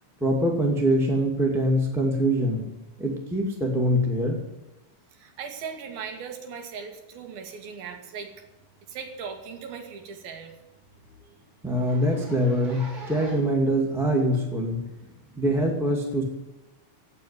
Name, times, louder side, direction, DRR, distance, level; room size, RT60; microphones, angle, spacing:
voice 1, 0.2-2.7 3.0-4.4 11.6-14.8 15.4-16.2, equal, ahead, 0 dB, 1.3 m, -24 dB
voice 2, 5.1-8.3 8.9-10.5, right 6 dB, 75° right, 4 dB, 3.8 m, -38 dB
Zipper (clothing), 9.0-9.2 9.5-9.6 10.0-10.1 10.5-10.6 10.8-11.0 11.6-13.6 14.3-14.4 15.5-15.6, right 2 dB, 40° right, 4.2 m, -44 dB
17.0 x 6.8 x 9.8 m, 1.0 s
omnidirectional pair, 4.3 m